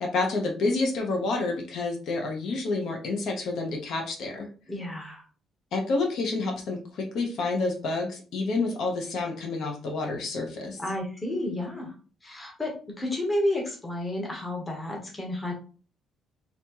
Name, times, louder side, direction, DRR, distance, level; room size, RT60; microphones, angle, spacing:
voice 1, 0.0-4.5 5.7-10.8, left 3 dB, 55° left, 1 dB, 0.9 m, -29 dB
voice 2, 4.7-5.2 10.8-11.9 12.2-15.5, left 1 dB, 15° left, -1 dB, 1.0 m, -31 dB
4.1 x 2.9 x 2.9 m, 0.39 s
cardioid pair, 180°, 0 cm